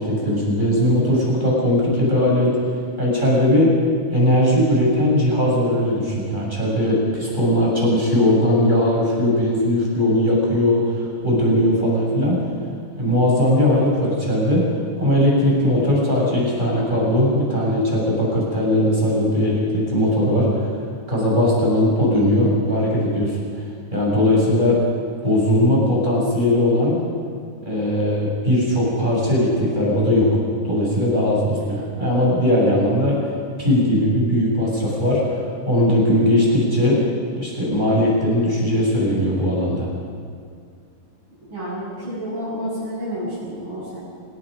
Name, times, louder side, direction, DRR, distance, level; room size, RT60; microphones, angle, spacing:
voice 1, 0.0-2.5 3.0-3.7 4.1-12.4 13.0-14.7 15.0-20.7 21.1-23.4 23.9-24.8 25.2-27.0 27.6-30.3 30.6-33.2 33.6-37.0 37.4-39.9, left 1 dB, 15° right, -4 dB, 7.2 m, -19 dB
voice 2, 41.5-44.0, equal, 40° right, -11 dB, 8.0 m, -29 dB
26.5 x 20.5 x 5.2 m, 2.1 s
omnidirectional pair, 3.6 m